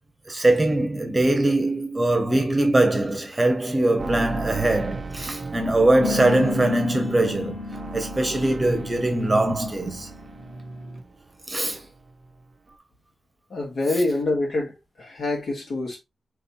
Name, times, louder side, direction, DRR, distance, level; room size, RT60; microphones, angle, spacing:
voice 1, 0.3-7.6 7.9-10.1 11.5-11.8, right 1 dB, 20° right, 1.0 m, -22 dB
sound 1, 4.0-11.5 11.7-12.4 12.7-12.8, right 3 dB, 35° right, 0.6 m, -36 dB
sound 2, 6.0-11.0, left 4 dB, 25° left, 1.6 m, -34 dB
voice 2, 13.5-16.0, left 2 dB, 65° left, 2.1 m, -26 dB
5.4 x 3.2 x 2.7 m
wide cardioid pair, 160°, 0 cm